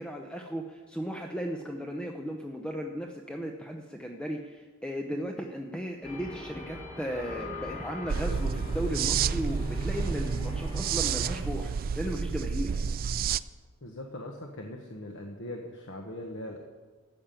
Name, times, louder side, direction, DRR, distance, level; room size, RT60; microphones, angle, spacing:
voice 1, 0.0-12.8, equal, 5° left, 2 dB, 0.7 m, -36 dB
sound 1, 6.0-11.4, left 1 dB, 35° left, 5.0 m, -40 dB
sound 2, 8.1-13.4, right 6 dB, 40° right, 0.3 m, -30 dB
voice 2, 13.8-16.6, left 1 dB, 55° left, 2 dB, 1.2 m, -40 dB
13.5 x 7.3 x 9.0 m, 1.4 s
head